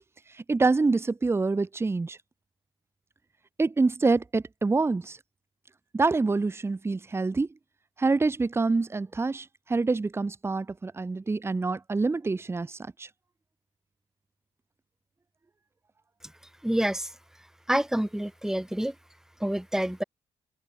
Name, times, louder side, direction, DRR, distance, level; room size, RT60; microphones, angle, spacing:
voice 1, 0.5-2.2 3.6-5.2 5.9-7.5 8.0-13.1, right 3 dB, 20° right, 1.0 m, -26 dB
voice 2, 16.6-17.1 17.7-18.9 19.4-20.0, right 1 dB, 5° right, 1.9 m, -27 dB
cardioid pair, 105°, 13 cm